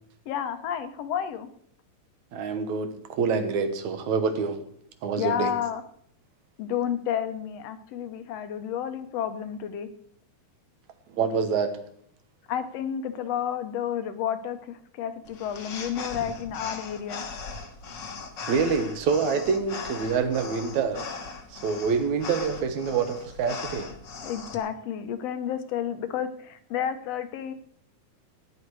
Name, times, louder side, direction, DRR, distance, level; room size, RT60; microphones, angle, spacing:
voice 1, 0.3-1.5 5.2-5.8 6.6-9.9 12.5-17.2 24.2-27.5, left 9 dB, 65° left, 9 dB, 1.9 m, -31 dB
voice 2, 2.3-4.6 5.0-5.5 11.1-11.7 18.5-21.1 21.5-23.9, right 5 dB, 70° right, 8 dB, 2.6 m, -26 dB
sound 1, 15.3-24.6, left 5 dB, 50° left, 1.5 m, -39 dB
17.0 x 10.0 x 4.8 m, 0.66 s
omnidirectional pair, 3.6 m